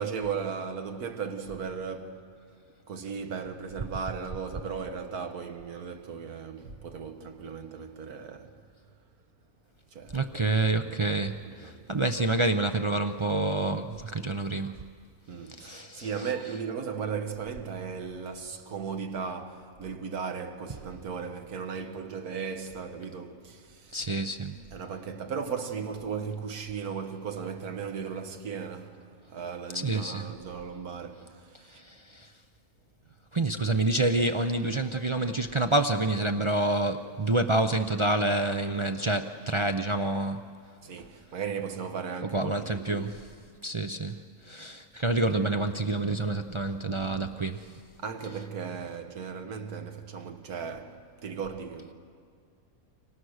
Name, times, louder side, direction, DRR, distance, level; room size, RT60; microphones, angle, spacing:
voice 1, 0.0-2.3 2.9-8.6 9.9-10.2 10.7-11.8 15.3-24.1 24.7-31.8 40.8-43.1 46.9-47.3 48.0-51.9, right 6 dB, 80° right, 1.9 m, -36 dB
voice 2, 10.1-14.8 15.6-16.1 23.9-24.6 29.7-30.3 31.7-32.3 33.3-40.5 42.3-43.2 43.6-47.7, right 2 dB, 45° right, 0.3 m, -28 dB
30.0 x 25.0 x 6.5 m
omnidirectional pair, 1.6 m